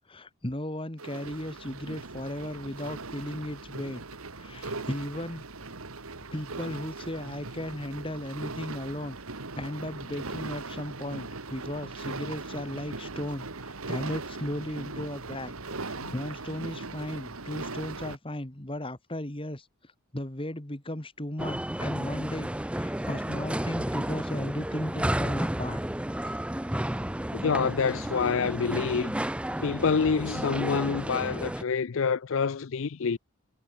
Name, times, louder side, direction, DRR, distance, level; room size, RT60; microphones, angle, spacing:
voice 1, 0.1-4.0 4.4-5.4 6.3-9.2 9.6-15.5 15.8-19.7 20.1-25.8 26.2-26.3, left 1 dB, 25° left, 1.8 m, -36 dB
sound 1, 1.0-18.2, right 3 dB, 80° right, 2.1 m, -39 dB
sound 2, 21.4-31.6, right 1 dB, 5° right, 0.5 m, -32 dB
voice 2, 27.3-29.2 29.6-33.2, left 5 dB, 65° left, 0.5 m, -27 dB
head